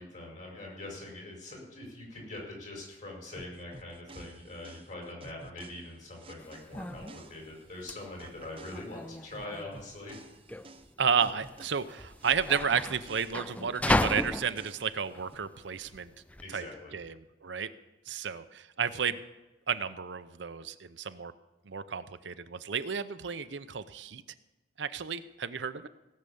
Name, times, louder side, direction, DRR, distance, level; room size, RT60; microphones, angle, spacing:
voice 1, 0.0-10.2 16.4-16.9, left 2 dB, 45° left, -1 dB, 5.4 m, -43 dB
sound 1, 3.4-7.8 8.2-13.8 14.2-15.4, right 2 dB, 30° right, 0.8 m, -52 dB
sound 2, 6.4-16.5, left 1 dB, 10° left, 0.4 m, -35 dB
voice 2, 11.0-16.1 16.5-16.7 16.9-17.2 17.4-17.7 18.1-19.2 19.7-21.3 21.7-24.2 24.8-25.9, right 6 dB, 80° right, 12 dB, 0.7 m, -32 dB
17.5 x 6.7 x 8.4 m, 1.0 s
head